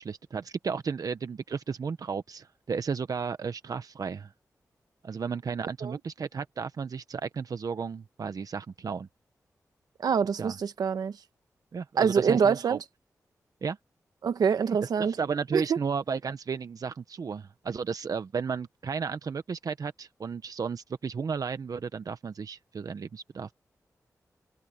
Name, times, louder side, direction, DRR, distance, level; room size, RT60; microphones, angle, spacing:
voice 1, 0.0-4.3 5.0-9.1 10.4-10.6 11.7-12.8 13.6-13.8 14.7-23.5, right 5 dB, 65° right, 1.0 m, -33 dB
voice 2, 10.0-11.2 12.0-12.8 14.2-15.1 15.5-15.8, right 6 dB, 85° right, 1.2 m, -25 dB
open air
cardioid pair, 50°, 7 cm